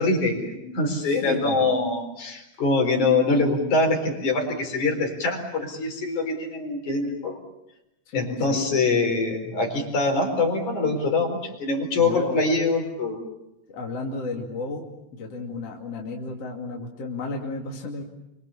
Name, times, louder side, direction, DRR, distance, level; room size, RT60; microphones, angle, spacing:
voice 1, 0.0-7.4 8.1-13.2, left 3 dB, 75° left, 2 dB, 5.9 m, -24 dB
voice 2, 1.1-1.7 8.1-8.8 12.0-12.4 13.7-18.0, left 3 dB, 55° left, -1 dB, 3.5 m, -33 dB
27.5 x 25.5 x 7.2 m, 0.88 s
omnidirectional pair, 3.4 m